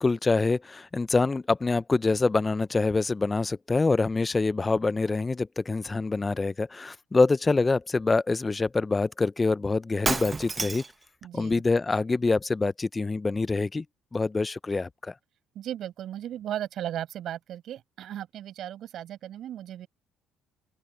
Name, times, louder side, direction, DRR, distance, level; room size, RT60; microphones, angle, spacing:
voice 1, 0.0-10.8 11.3-13.8 14.1-15.1, left 3 dB, 25° left, 0.5 m, -25 dB
Shatter, 10.0-11.0, right 4 dB, 25° right, 0.9 m, -29 dB
voice 2, 11.2-11.6 15.6-19.9, right 11 dB, 65° right, 5.6 m, -36 dB
supercardioid pair, 65°, 0 cm